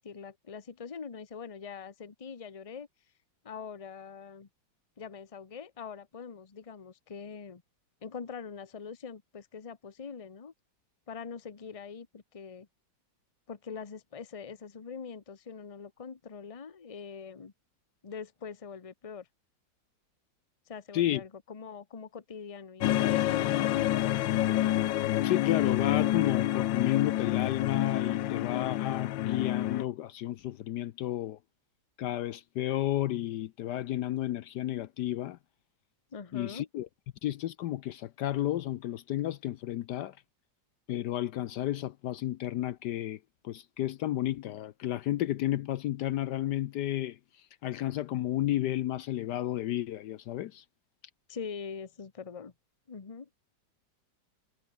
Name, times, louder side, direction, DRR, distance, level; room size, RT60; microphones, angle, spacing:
voice 1, 0.0-2.9 3.4-4.5 5.0-7.6 8.0-10.5 11.1-12.7 13.5-17.5 18.0-19.3 20.7-24.1 36.1-36.7 51.3-52.5 52.9-53.3, left 6 dB, 25° left, 0.9 m, -43 dB
sound 1, 22.8-29.8, left 14 dB, 85° left, 1.5 m, -28 dB
voice 2, 25.2-31.4 32.0-35.4 36.3-36.9 37.2-40.2 40.9-43.2 43.4-47.2 47.6-50.6, left 13 dB, 70° left, 1.2 m, -32 dB
omnidirectional pair, 2.0 m